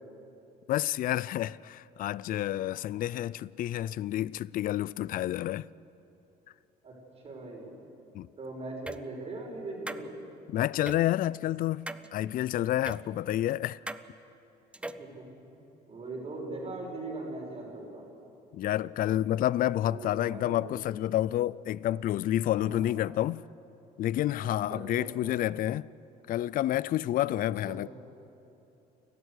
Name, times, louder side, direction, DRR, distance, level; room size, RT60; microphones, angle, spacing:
voice 1, 0.7-5.7 8.1-8.3 10.5-13.8 18.5-23.4 24.0-25.9 26.3-27.9, left 13 dB, 55° left, 0.4 m, -29 dB
voice 2, 6.8-7.7 8.4-10.1 15.0-15.3 15.5-18.0 19.9-20.7 22.6-22.9 24.4-25.4 27.3-27.8, right 2 dB, 35° right, 5.9 m, -41 dB
sound 1, 8.9-9.0 9.9-10.0 10.9-11.0 11.9-12.1 12.9-13.0 13.9-14.0 14.7-15.1, right 1 dB, 5° right, 0.7 m, -38 dB
29.5 x 13.0 x 8.2 m
cardioid pair, 110°, 17 cm